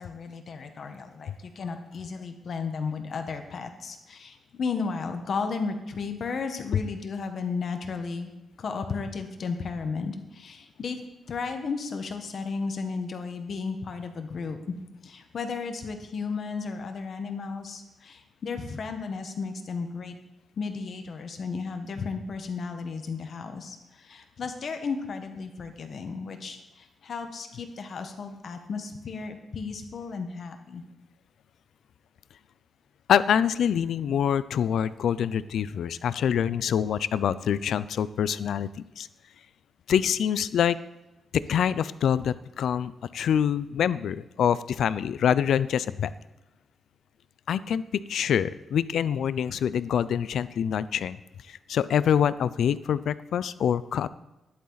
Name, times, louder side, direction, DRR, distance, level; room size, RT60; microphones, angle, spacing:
voice 1, 0.0-8.3 8.6-11.0 11.3-14.6 15.0-20.2 20.6-30.8, left 4 dB, 55° left, 7 dB, 1.3 m, -34 dB
voice 2, 33.1-39.1 39.9-40.8 41.3-46.1 47.5-51.2 51.5-54.1, left 8 dB, 80° left, 16 dB, 0.5 m, -25 dB
12.5 x 11.5 x 4.0 m, 1.0 s
wide cardioid pair, 140°, 0 cm